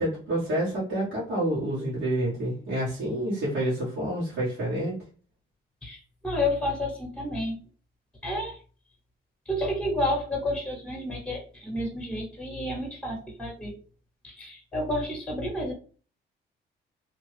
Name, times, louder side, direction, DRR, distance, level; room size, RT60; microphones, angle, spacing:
voice 1, 0.0-5.0, right 1 dB, 80° right, -8 dB, 1.5 m, -28 dB
voice 2, 5.8-7.6 8.2-8.6 9.5-13.7 14.2-15.7, left 1 dB, 5° left, 0 dB, 1.0 m, -30 dB
2.8 x 2.3 x 3.2 m, 0.40 s
cardioid pair, 90°, 20 cm